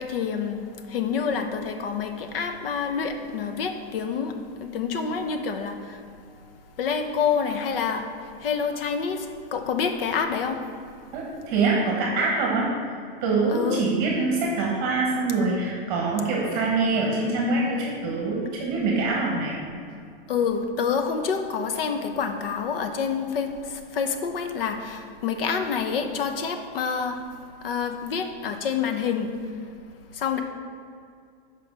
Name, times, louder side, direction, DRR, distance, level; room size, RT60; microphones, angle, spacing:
voice 1, 0.0-6.0 6.8-10.6 13.5-13.8 20.3-27.2 27.6-29.3 30.1-30.4, left 6 dB, 75° left, 6 dB, 0.9 m, -27 dB
voice 2, 11.1-12.9 13.2-19.5, right 3 dB, 30° right, -2 dB, 1.2 m, -24 dB
6.8 x 5.0 x 5.4 m, 2.3 s
supercardioid pair, 170°, 29 cm